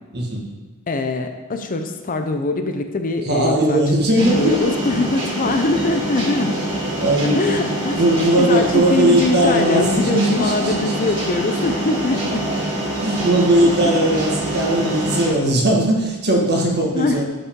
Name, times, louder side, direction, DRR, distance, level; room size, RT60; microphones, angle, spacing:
voice 1, 0.1-0.5 3.2-4.8 7.0-11.0 13.0-17.3, right 1 dB, 50° right, -1 dB, 1.7 m, -19 dB
voice 2, 0.9-3.8 4.3-6.6 7.3-8.0 8.4-12.5 13.6-13.9 16.9-17.2, left 2 dB, 40° left, 6 dB, 0.6 m, -22 dB
sound 1, 4.2-15.3, right 1 dB, 25° right, 2.5 m, -25 dB
12.5 x 5.5 x 3.7 m, 1.3 s
head